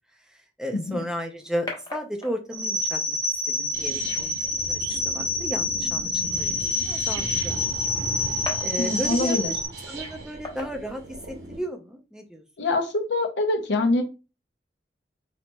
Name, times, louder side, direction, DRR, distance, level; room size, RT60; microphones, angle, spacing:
voice 1, 0.1-3.2 3.5-7.6 8.6-9.6 9.9-12.4, equal, 5° right, 4 dB, 0.5 m, -34 dB
voice 2, 0.7-1.1 8.8-9.5 12.6-14.0, left 2 dB, 80° left, 5 dB, 0.6 m, -24 dB
sound 1, 0.7-11.7, left 2 dB, 25° left, 0.8 m, -44 dB
sound 2, 2.5-9.7, left 2 dB, 85° right, 1.1 m, -27 dB
sound 3, 3.7-11.6, right 2 dB, 65° right, 0.9 m, -37 dB
4.1 x 2.8 x 2.2 m, 0.30 s
head